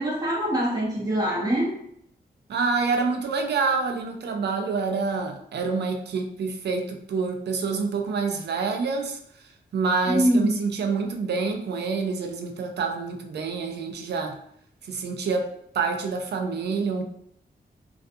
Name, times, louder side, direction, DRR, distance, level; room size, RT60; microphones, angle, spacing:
voice 1, 0.0-1.8 10.1-10.6, equal, 20° right, -4 dB, 0.7 m, -24 dB
voice 2, 2.5-9.2 9.7-14.4 14.9-17.0, right 4 dB, 75° right, 4 dB, 0.4 m, -27 dB
2.4 x 2.3 x 2.5 m, 0.70 s
wide cardioid pair, 150°, 17 cm